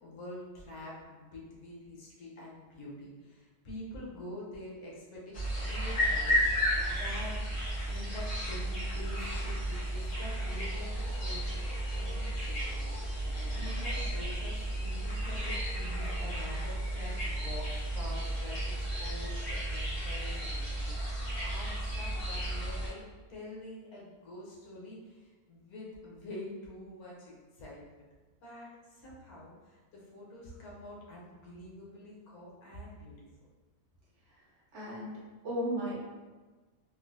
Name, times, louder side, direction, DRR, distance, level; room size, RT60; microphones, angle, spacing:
voice 1, 0.0-7.4 7.9-23.0 23.3-27.8 28.4-33.3, left 1 dB, 70° left, -5 dB, 1.3 m, -46 dB
sound 1, 5.3-22.9, equal, 50° left, 1.1 m, -33 dB
voice 2, 34.7-35.9, equal, 55° right, -7 dB, 1.1 m, -35 dB
3.6 x 2.5 x 2.5 m, 1.3 s
omnidirectional pair, 1.7 m